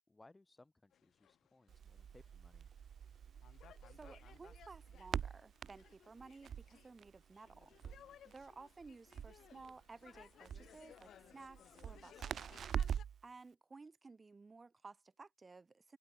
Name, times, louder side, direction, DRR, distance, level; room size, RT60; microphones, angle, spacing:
voice 1, 0.1-2.7, left 2 dB, 20° left, 2.8 m, -65 dB
sound 1, 0.9-2.5 2.9-13.0, left 10 dB, 60° left, 2.7 m, -62 dB
Crackle, 1.7-13.2, right 8 dB, 55° right, 0.9 m, -45 dB
voice 2, 3.9-7.7 8.2-12.6 13.2-16.0, right 3 dB, 30° right, 1.6 m, -56 dB
hypercardioid pair, 60°, 0 cm